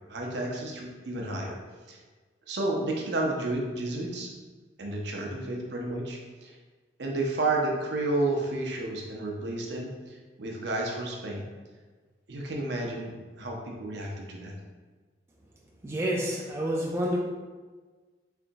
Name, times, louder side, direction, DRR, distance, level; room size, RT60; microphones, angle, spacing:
voice 1, 0.1-1.6 1.9-2.0 2.5-4.3 4.8-6.5 7.0-11.5 12.3-14.5, right 2 dB, 65° right, 0 dB, 0.7 m, -31 dB
voice 2, 15.8-17.2, equal, 15° right, -3 dB, 0.3 m, -28 dB
3.8 x 3.3 x 2.6 m, 1.4 s
head